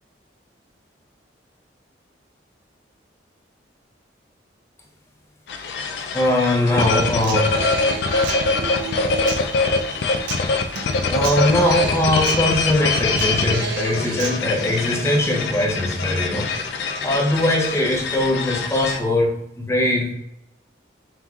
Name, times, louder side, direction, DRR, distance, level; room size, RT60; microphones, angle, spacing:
sound 1, 5.5-19.0, left 4 dB, 65° left, 0.3 m, -24 dB
voice 1, 6.1-7.6 11.1-16.6 17.0-20.1, left 1 dB, 15° left, -1 dB, 0.6 m, -21 dB
Human voice / Acoustic guitar, 6.8-14.8, right 5 dB, 70° right, 0.4 m, -32 dB
5.6 x 3.0 x 2.3 m, 0.77 s
head